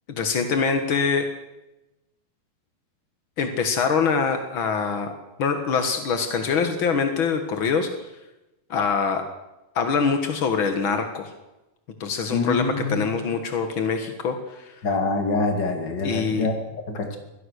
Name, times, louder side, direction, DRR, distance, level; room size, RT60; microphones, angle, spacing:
voice 1, 0.1-1.3 3.4-5.1 5.4-7.9 8.7-9.2 9.7-11.3 12.0-14.7 16.0-16.5, left 5 dB, 65° left, 6 dB, 1.2 m, -24 dB
voice 2, 12.3-13.1 14.8-17.2, left 3 dB, 30° left, 4 dB, 2.4 m, -25 dB
23.5 x 17.0 x 6.6 m, 0.97 s
omnidirectional pair, 4.9 m